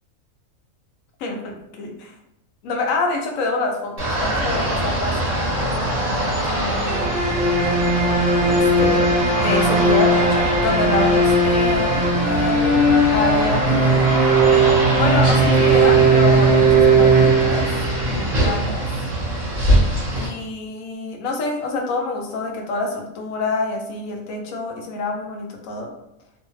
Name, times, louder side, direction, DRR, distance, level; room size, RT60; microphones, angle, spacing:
voice 1, 1.2-2.1 2.6-7.2 8.5-9.0 9.4-14.1 15.0-17.7 18.0-18.9 20.2-25.9, left 3 dB, 75° left, 2 dB, 1.0 m, -27 dB
sound 1, 4.0-20.3, right 1 dB, 30° right, 1.1 m, -23 dB
sound 2, 6.9-18.0, right 2 dB, 55° right, 0.8 m, -17 dB
2.6 x 2.1 x 3.0 m, 0.85 s
omnidirectional pair, 1.4 m